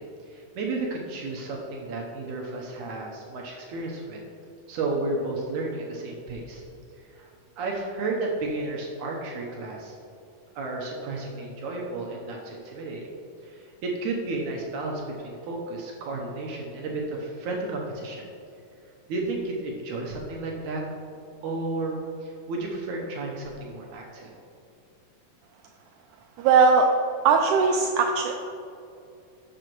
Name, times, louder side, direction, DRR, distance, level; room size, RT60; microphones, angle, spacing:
voice 1, 0.0-4.2 4.7-6.6 7.0-7.3 7.6-10.0 10.6-13.1 13.4-18.2 19.1-20.8 21.4-24.3, right 2 dB, 70° right, -1 dB, 2.1 m, -32 dB
voice 2, 26.4-26.9 27.3-28.4, right 5 dB, 90° right, 3 dB, 1.7 m, -19 dB
12.0 x 7.4 x 3.1 m, 2.7 s
omnidirectional pair, 4.1 m